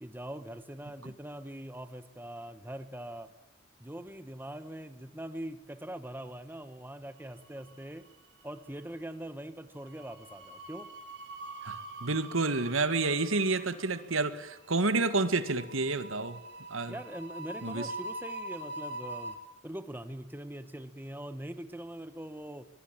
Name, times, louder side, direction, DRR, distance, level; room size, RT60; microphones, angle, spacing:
voice 1, 0.0-3.3 3.8-8.1 8.4-10.9 16.9-19.4 19.6-22.7, right 1 dB, 10° right, 11 dB, 1.4 m, -42 dB
sound 1, 7.3-8.1 8.3-8.6 9.8-19.3, right 2 dB, 55° right, 4.5 m, -44 dB
voice 2, 11.6-16.4 16.7-16.9 17.6-17.9, right 3 dB, 90° right, 12 dB, 2.0 m, -29 dB
24.0 x 22.0 x 9.1 m, 0.84 s
head